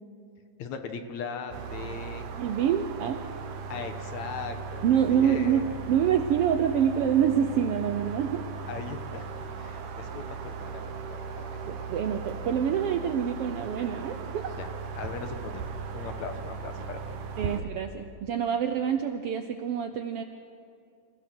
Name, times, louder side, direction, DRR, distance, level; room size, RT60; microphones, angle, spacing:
voice 1, 0.6-2.3 3.7-5.8 8.7-9.3 9.6-11.9 13.9-14.0 14.5-14.7 14.9-15.6 15.9-17.7, left 5 dB, 70° left, 7 dB, 2.5 m, -39 dB
sound 1, 1.5-17.6, right 5 dB, 90° right, 2.9 m, -37 dB
voice 2, 2.4-3.2 4.8-8.4 11.7-14.6 17.4-20.2, right 8 dB, 75° right, 7 dB, 1.4 m, -26 dB
28.0 x 16.0 x 6.1 m, 2.5 s
omnidirectional pair, 3.5 m